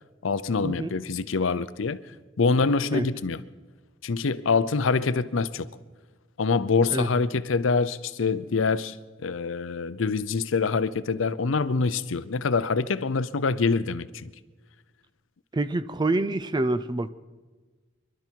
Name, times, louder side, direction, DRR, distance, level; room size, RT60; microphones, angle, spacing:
voice 1, 0.2-2.0 2.4-3.4 4.0-5.7 6.4-9.0 9.2-14.3, left 4 dB, 75° left, 0.6 m, -25 dB
voice 2, 15.5-17.1, right 2 dB, 20° right, 0.4 m, -26 dB
24.5 x 12.0 x 4.6 m
head